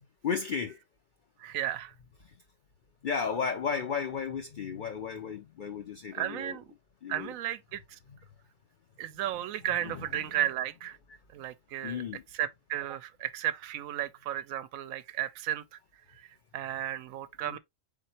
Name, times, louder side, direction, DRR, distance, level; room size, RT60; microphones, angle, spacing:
voice 1, 0.2-0.8 2.2-2.3 3.0-6.6 7.0-7.3 9.8-10.2 11.8-12.2 17.4-17.6, left 6 dB, 55° left, 0.6 m, -34 dB
voice 2, 1.4-1.9 6.1-6.7 7.1-8.0 9.0-11.0 11.3-12.0 12.3-15.6 16.1-17.6, right 12 dB, 85° right, 1.0 m, -34 dB
4.2 x 3.7 x 2.8 m
omnidirectional pair, 1.4 m